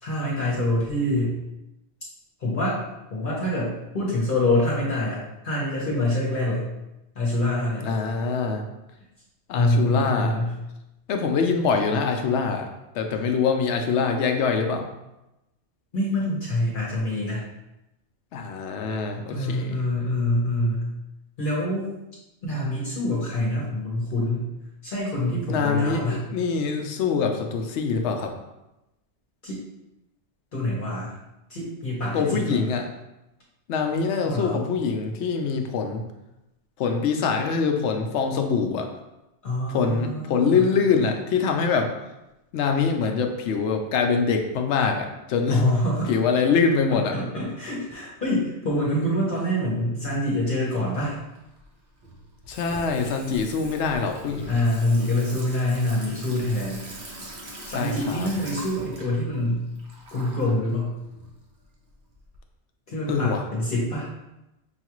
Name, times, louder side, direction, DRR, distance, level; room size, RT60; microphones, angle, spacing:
voice 1, 0.0-1.3 2.4-2.8 3.1-6.7 7.1-7.8 9.5-10.5 15.9-17.4 19.3-20.9 21.4-21.9 22.4-24.5 24.8-26.2 29.4-29.6 30.5-31.1 31.5-32.6 34.2-34.6 39.4-40.7 45.5-46.1 46.9-51.1 54.5-56.8 57.7-59.6 60.1-60.9 62.9-64.1, left 1 dB, 50° left, -6 dB, 1.1 m, -25 dB
voice 2, 7.8-8.6 9.5-10.4 11.1-12.7 12.9-14.8 18.3-19.8 25.5-28.3 32.1-32.9 33.7-36.0 36.8-38.9 39.7-41.9 42.5-45.7 46.1-47.2 52.5-54.6 57.7-58.3 63.1-63.4, left 5 dB, 80° left, 4 dB, 0.9 m, -24 dB
Water tap faucet / Sink (filling or washing), 50.7-62.4, right 1 dB, 50° right, 1.0 m, -43 dB
5.7 x 2.4 x 2.9 m, 0.94 s
omnidirectional pair, 1.2 m